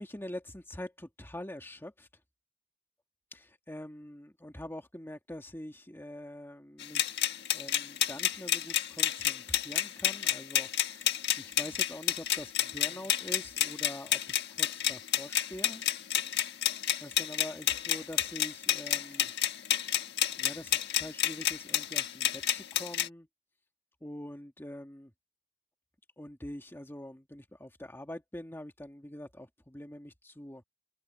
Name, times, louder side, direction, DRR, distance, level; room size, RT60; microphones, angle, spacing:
voice 1, 0.0-2.1 3.3-15.8 17.0-19.3 20.4-23.3 24.0-25.1 26.2-30.6, left 1 dB, 10° left, 1.8 m, -45 dB
sound 1, 6.8-23.1, left 11 dB, 60° left, 1.5 m, -30 dB
open air
head